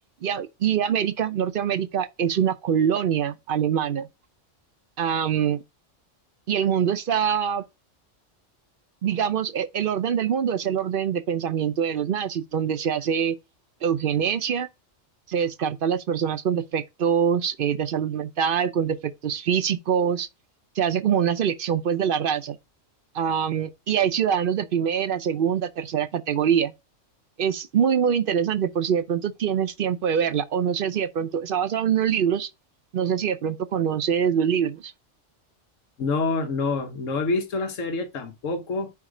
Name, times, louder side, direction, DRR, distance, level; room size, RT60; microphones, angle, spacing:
voice 1, 0.2-4.1 5.0-5.6 6.5-7.6 9.0-13.4 13.8-14.7 15.3-20.3 20.8-22.6 23.1-26.7 27.4-32.5 32.9-34.9, right 8 dB, 55° right, 0.7 m, -24 dB
voice 2, 36.0-38.9, left 3 dB, 85° left, 1.3 m, -27 dB
5.0 x 4.8 x 4.8 m
omnidirectional pair, 1.3 m